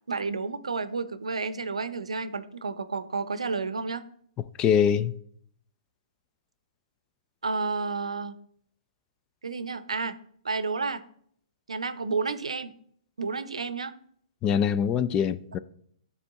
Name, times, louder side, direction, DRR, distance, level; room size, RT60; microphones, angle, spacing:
voice 1, 0.1-4.0 7.4-8.4 9.4-10.2 10.4-11.0 11.7-12.7 13.2-13.9, right 4 dB, 80° right, 0.6 m, -31 dB
voice 2, 4.6-5.1 14.4-15.6, left 8 dB, 25° left, 0.4 m, -23 dB
12.5 x 4.3 x 3.6 m
figure-of-eight pair, 115°, 3 cm